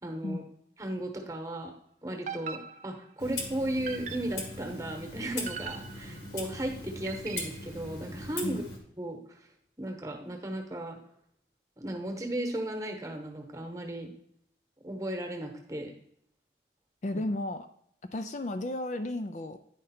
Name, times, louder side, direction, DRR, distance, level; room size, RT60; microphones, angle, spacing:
voice 1, 0.0-0.4 0.8-1.7 2.0-8.6 9.0-9.5 9.8-11.0 11.8-14.1 14.8-15.9 17.1-17.2, right 1 dB, 20° right, 3 dB, 1.1 m, -35 dB
sound 1, 2.3-3.2 3.9-4.5 5.5-6.3 7.1-7.7, right 6 dB, 45° right, 0.5 m, -41 dB
Clock, 3.2-8.8, left 2 dB, 80° left, 1.7 m, -40 dB
voice 2, 17.0-17.7 18.1-19.6, left 1 dB, 40° left, 8 dB, 0.4 m, -33 dB
9.7 x 5.1 x 4.3 m, 0.69 s
head